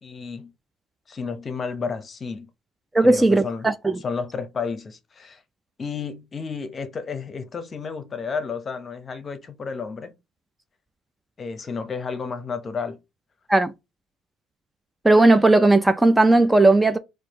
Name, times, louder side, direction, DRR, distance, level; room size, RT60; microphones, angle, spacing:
voice 1, 0.0-0.5 1.1-2.5 3.0-3.7 4.0-5.4 5.8-10.1 11.4-13.0, left 5 dB, 40° left, 0.8 m, -31 dB
voice 2, 2.9-4.0 13.5-13.7 15.0-17.0, right 2 dB, 15° right, 0.5 m, -16 dB
4.4 x 2.5 x 2.9 m
supercardioid pair, 75°, 0 cm